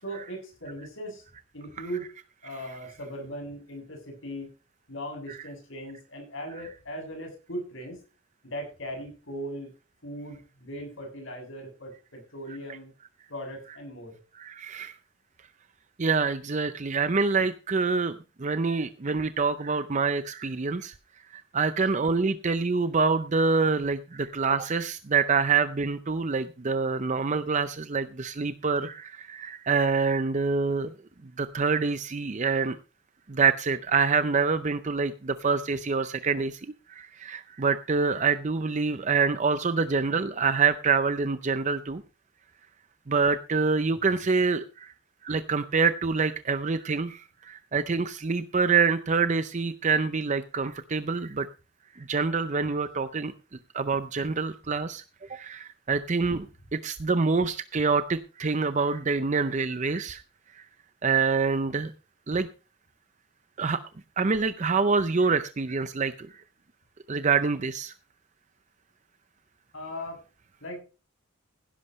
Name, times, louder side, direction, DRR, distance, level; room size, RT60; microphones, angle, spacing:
voice 1, 0.0-1.2 1.5-2.1 2.4-4.5 4.9-8.0 8.4-9.7 10.0-12.9 13.3-14.2 69.7-70.2 70.6-70.8, equal, 65° left, 3 dB, 7.6 m, -38 dB
voice 2, 14.4-15.0 16.0-20.9 21.3-30.9 31.4-32.8 33.3-42.0 43.1-44.9 45.2-51.5 51.9-53.3 53.7-56.5 56.7-60.2 60.5-60.6 61.0-61.9 62.3-62.5 63.6-63.8 64.2-66.4 67.1-67.9, right 4 dB, 35° right, 12 dB, 0.5 m, -26 dB
16.5 x 11.0 x 3.1 m, 0.32 s
head